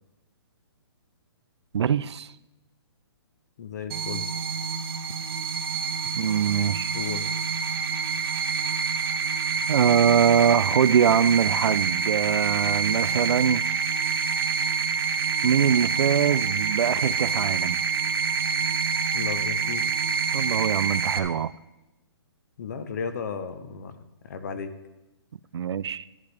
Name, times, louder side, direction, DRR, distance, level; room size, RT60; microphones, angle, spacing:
voice 1, 1.7-2.3 6.2-6.9 9.7-13.6 15.4-17.8 20.3-21.5 25.5-26.1, right 8 dB, 85° right, 0.4 m, -23 dB
voice 2, 3.6-4.3 6.9-7.3 19.1-19.9 22.6-23.9 24.2-24.7, left 6 dB, 40° left, 0.9 m, -34 dB
sound 1, 3.9-21.2, right 6 dB, 65° right, 1.0 m, -27 dB
13.5 x 11.0 x 3.3 m
hypercardioid pair, 170°, 14 cm